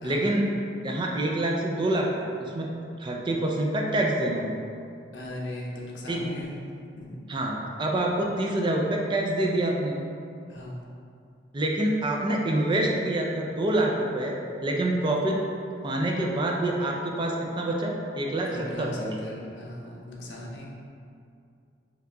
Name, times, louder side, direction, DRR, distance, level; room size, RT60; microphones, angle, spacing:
voice 1, 0.0-0.4 0.8-2.7 3.0-4.5 6.1-6.3 7.3-10.0 11.5-15.4 15.8-19.2, right 1 dB, 25° right, -1 dB, 0.4 m, -26 dB
voice 2, 5.1-6.5 7.0-7.1 10.5-10.8 18.4-18.9 19.2-20.7, left 1 dB, 85° left, -3 dB, 0.7 m, -38 dB
4.6 x 2.3 x 3.8 m, 2.4 s
head